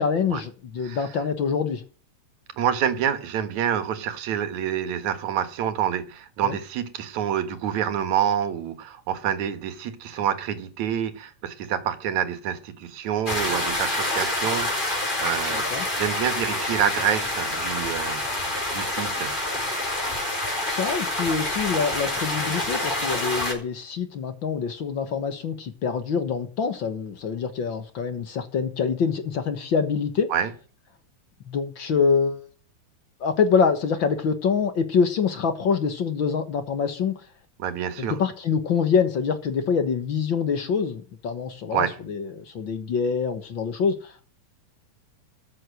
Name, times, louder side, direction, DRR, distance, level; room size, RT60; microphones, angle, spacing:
voice 1, 0.0-1.8 6.4-6.6 15.5-15.9 20.6-30.3 31.5-32.4 33.2-37.1 38.0-44.3, left 6 dB, 50° left, 1.8 m, -25 dB
voice 2, 2.6-18.2 18.5-19.3 30.3-30.5 37.6-38.2 41.7-42.0, right 9 dB, 75° right, 2.8 m, -27 dB
sound 1, 13.3-23.5, left 1 dB, 15° left, 4.3 m, -27 dB
13.5 x 7.8 x 6.3 m
omnidirectional pair, 3.3 m